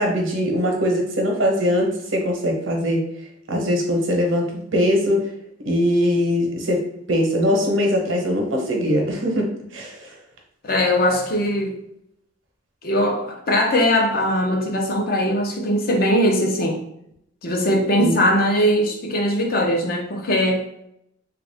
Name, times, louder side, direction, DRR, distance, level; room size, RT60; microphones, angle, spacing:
voice 1, 0.0-3.1 3.5-5.3 5.6-10.1 18.0-18.2, equal, 75° right, 1 dB, 0.9 m, -21 dB
voice 2, 10.6-11.8 12.8-16.8 17.4-20.6, equal, 50° left, 2 dB, 0.6 m, -20 dB
3.4 x 2.4 x 3.3 m, 0.75 s
head